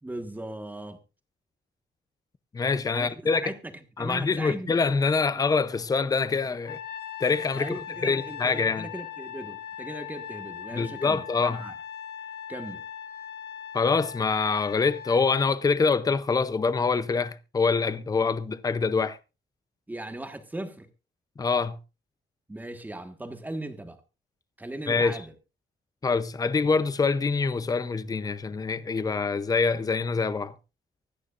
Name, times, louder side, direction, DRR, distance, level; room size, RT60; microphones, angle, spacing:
voice 1, 0.0-1.0 2.9-4.8 7.5-11.7 12.5-12.8 19.9-20.9 22.5-24.0 24.6-25.3, right 1 dB, 10° right, 1.5 m, -38 dB
voice 2, 2.5-3.4 4.0-6.8 7.2-7.7 8.0-8.9 10.7-11.6 13.7-19.2 21.4-21.8 24.9-25.2 26.0-30.5, left 4 dB, 20° left, 0.6 m, -25 dB
Trumpet, 6.6-15.2, left 9 dB, 60° left, 2.0 m, -40 dB
24.5 x 9.7 x 2.5 m
wide cardioid pair, 180°, 18 cm